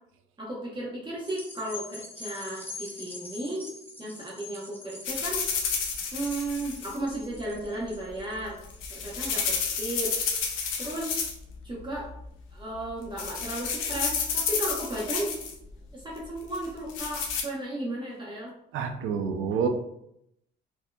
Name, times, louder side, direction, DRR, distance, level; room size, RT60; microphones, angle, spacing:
voice 1, 0.4-3.6 4.0-5.4 6.1-8.6 8.9-10.3 10.8-11.3 11.6-12.1 12.5-15.4 15.9-18.5, right 1 dB, 25° right, -5 dB, 0.9 m, -34 dB
sound 1, 1.2-9.9 10.4-10.5, left 2 dB, 10° left, 0.6 m, -44 dB
sound 2, 5.0-7.0 8.5-11.5 11.8-12.2 12.7-12.9 13.2-15.5 16.5-17.4, left 5 dB, 80° left, 0.7 m, -31 dB
voice 2, 18.7-19.7, right 6 dB, 90° right, 5 dB, 0.5 m, -28 dB
4.5 x 2.7 x 2.2 m, 0.78 s
cardioid pair, 90°, 20 cm